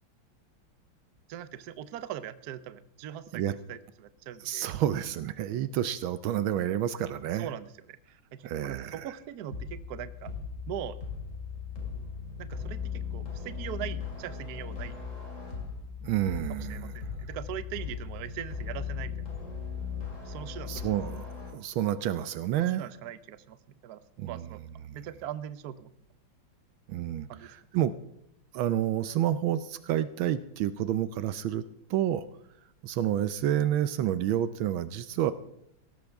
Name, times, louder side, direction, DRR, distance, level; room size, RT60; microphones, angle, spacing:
voice 1, 1.3-4.7 7.3-8.0 8.3-10.3 10.7-11.0 12.4-15.0 16.5-19.3 20.2-20.9 22.6-24.0 24.3-24.6 24.9-25.9 27.3-27.5, right 11 dB, 60° right, 14 dB, 1.1 m, -41 dB
voice 2, 4.4-7.5 8.4-9.1 16.0-17.0 20.7-22.8 24.2-24.4 24.8-25.0 26.9-27.9 28.5-31.6 31.9-32.2 32.8-35.3, right 11 dB, 80° right, 13 dB, 1.4 m, -29 dB
sound 1, 9.5-21.5, left 6 dB, 40° left, 2.9 m, -38 dB
17.5 x 14.5 x 3.5 m, 0.77 s
omnidirectional pair, 2.2 m